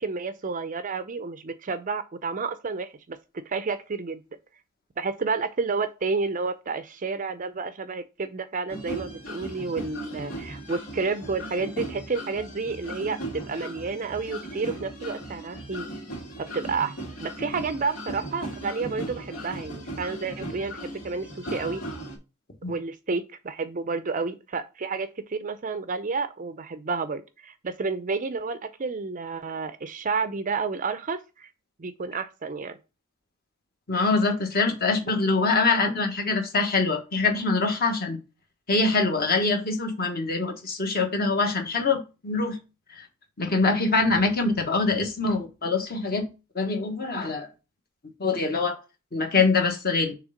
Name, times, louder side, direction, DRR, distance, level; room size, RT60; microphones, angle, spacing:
voice 1, 0.0-3.2 3.5-4.2 5.0-15.9 16.5-21.8 22.7-31.5 31.8-32.8, right 4 dB, 35° right, 0.5 m, -30 dB
sound 1, 8.7-22.2, right 1 dB, 75° left, 2.9 m, -37 dB
voice 2, 33.9-38.2 38.7-42.6 43.0-43.1 43.4-46.3 46.5-47.5 48.2-48.8 49.1-50.1, left 3 dB, 45° left, 1.3 m, -24 dB
6.4 x 3.4 x 5.0 m
head